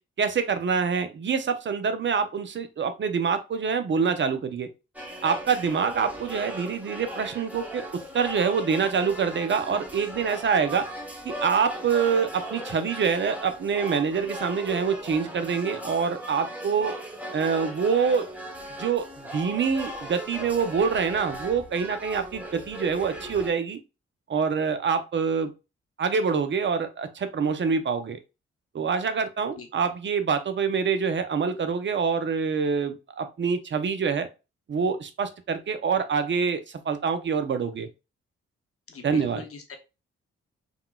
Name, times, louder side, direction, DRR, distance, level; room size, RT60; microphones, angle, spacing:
voice 1, 0.2-4.7 5.2-7.8 8.1-10.9 11.2-16.9 17.3-18.2 18.8-19.1 19.3-23.8 24.3-25.5 26.0-28.2 28.7-34.3 34.7-37.9 39.0-39.4, right 6 dB, 40° right, 9 dB, 0.6 m, -26 dB
sound 1, 4.9-23.5, right 1 dB, 5° right, 0.9 m, -38 dB
voice 2, 38.9-39.8, left 5 dB, 50° left, 4 dB, 0.9 m, -41 dB
3.6 x 2.3 x 2.3 m, 0.28 s
hypercardioid pair, 40°, 30 cm